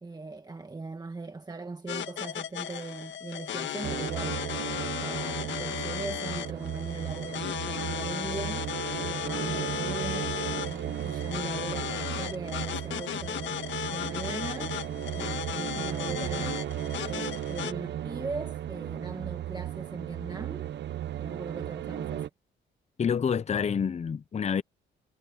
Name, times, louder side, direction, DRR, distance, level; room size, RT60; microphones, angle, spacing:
voice 1, 0.0-4.4 5.0-8.7 9.0-10.3 10.6-13.6 13.9-14.8 15.1-16.7 17.0-20.7 21.2-22.3, right 3 dB, 20° right, 1.5 m, -39 dB
sound 1, 1.9-17.7, left 10 dB, 65° left, 1.7 m, -35 dB
sound 2, 3.8-22.3, right 11 dB, 65° right, 1.0 m, -35 dB
voice 2, 23.0-24.6, left 7 dB, 35° left, 0.7 m, -27 dB
cardioid pair, 90°, 20 cm